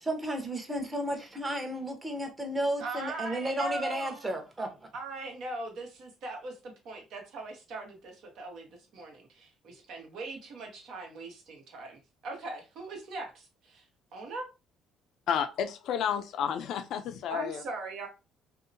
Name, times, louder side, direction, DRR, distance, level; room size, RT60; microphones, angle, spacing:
voice 1, 0.0-4.7, right 1 dB, 20° right, 0.9 m, -33 dB
voice 2, 2.8-4.3 4.9-13.8 14.1-14.4 17.3-18.1, right 3 dB, 70° right, 1.0 m, -40 dB
voice 3, 15.3-17.6, left 8 dB, 70° left, 0.4 m, -31 dB
2.7 x 2.1 x 2.6 m
supercardioid pair, 80°, 0 cm